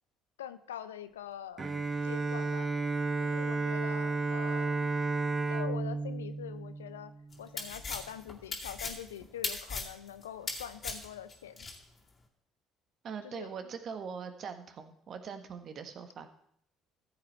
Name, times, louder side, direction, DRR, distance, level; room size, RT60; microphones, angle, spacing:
voice 1, 0.4-1.7 2.0-2.7 3.2-4.9 5.5-7.1 7.4-11.7 13.2-13.5, left 10 dB, 90° left, 13 dB, 0.5 m, -44 dB
Bowed string instrument, 1.6-7.5, right 3 dB, 35° right, 1.1 m, -32 dB
sound 1, 7.3-11.8, left 4 dB, 40° left, 2.3 m, -38 dB
voice 2, 13.0-16.3, right 6 dB, 50° right, 8 dB, 1.4 m, -42 dB
14.0 x 7.5 x 4.3 m, 0.67 s
hypercardioid pair, 60°, 0 cm